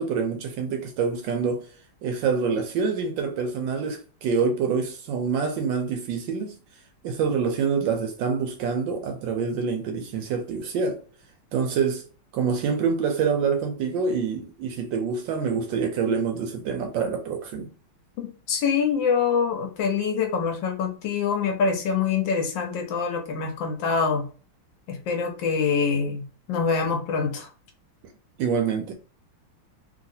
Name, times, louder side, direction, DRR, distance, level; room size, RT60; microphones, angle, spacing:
voice 1, 0.0-1.7 2.0-6.5 7.0-11.0 11.5-12.0 12.3-17.7 28.4-28.9, right 5 dB, 75° right, 1.2 m, -26 dB
voice 2, 18.2-24.3 24.9-27.5, left 6 dB, 70° left, 1.2 m, -25 dB
3.1 x 2.7 x 2.6 m
omnidirectional pair, 2.3 m